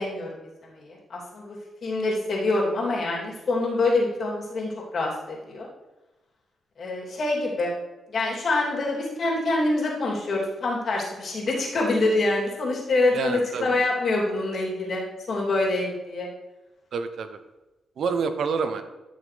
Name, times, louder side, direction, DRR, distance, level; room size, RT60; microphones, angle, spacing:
voice 1, 0.0-5.7 6.8-7.7 8.1-15.0 15.3-16.3, left 2 dB, 55° left, -3 dB, 3.1 m, -26 dB
voice 2, 13.1-13.7 16.9-17.4 18.0-18.8, right 5 dB, 70° right, 9 dB, 0.8 m, -27 dB
13.0 x 6.4 x 3.4 m, 1.1 s
cardioid pair, 95°, 0 cm